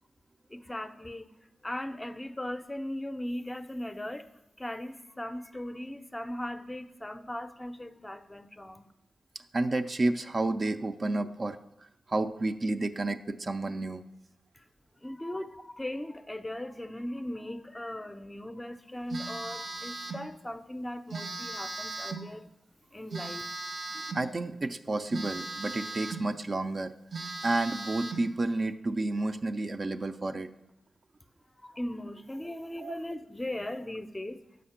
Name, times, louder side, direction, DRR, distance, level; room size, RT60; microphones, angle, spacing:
voice 1, 0.5-1.3 1.6-4.3 4.6-8.9 14.5-14.7 15.0-22.5 22.9-23.5 31.6-34.4, left 1 dB, 15° left, 0.5 m, -38 dB
voice 2, 9.5-14.0 23.9-26.9 27.4-30.5 32.8-32.9, right 2 dB, 45° right, 0.4 m, -31 dB
Telephone, 19.1-20.3 21.1-22.3 23.1-24.3 25.1-26.3 26.7-26.8 27.1-28.3, right 3 dB, 70° right, 0.9 m, -38 dB
6.3 x 5.0 x 5.7 m
cardioid pair, 55°, 0 cm